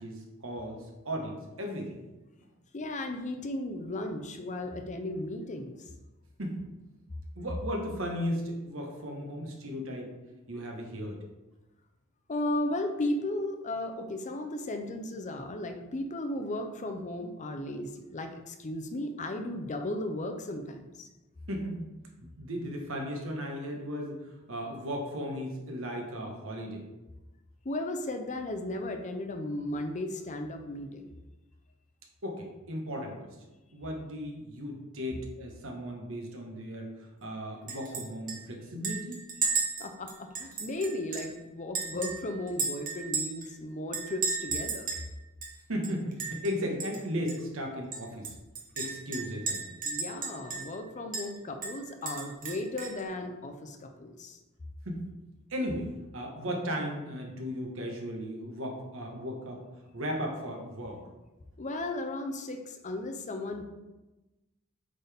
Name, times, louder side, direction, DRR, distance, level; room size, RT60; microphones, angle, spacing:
voice 1, 0.0-2.0 6.4-6.6 7.4-10.1 10.5-11.2 21.5-21.9 22.2-26.8 32.2-33.3 33.7-39.2 45.7-48.3 48.7-49.6 54.8-55.1 55.5-59.6 59.9-61.0, equal, 65° right, 1 dB, 1.3 m, -36 dB
voice 2, 2.7-5.9 12.3-21.1 27.6-31.1 39.8-44.9 49.8-54.4 61.6-63.6, left 1 dB, 35° left, 5 dB, 0.6 m, -35 dB
Chink clink, 37.7-38.0 38.3-38.4 38.8-41.3 41.7-43.5 43.9-45.1 45.4-45.5 45.8-46.5 46.8-47.0 47.3-47.4 47.9-50.8 51.1-51.3 51.6-53.0, right 4 dB, 40° right, 1.1 m, -34 dB
8.3 x 4.0 x 3.6 m, 1.1 s
head